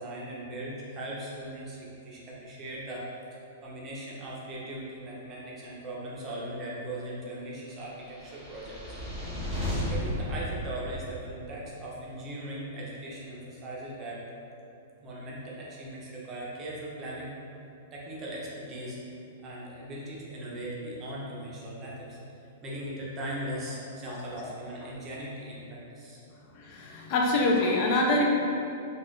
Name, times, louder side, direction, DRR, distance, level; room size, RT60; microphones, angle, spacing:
voice 1, 0.0-3.1 3.6-8.8 9.9-14.2 15.0-17.3 17.9-19.0 19.4-22.2 22.6-26.2, right 1 dB, 25° right, -5 dB, 0.6 m, -39 dB
sound 1, 8.1-11.5, left 1 dB, 5° left, 0.9 m, -34 dB
voice 2, 24.1-24.5 26.5-28.2, left 2 dB, 45° left, -1 dB, 0.4 m, -26 dB
2.4 x 2.3 x 3.4 m, 2.6 s
hypercardioid pair, 140°, 0 cm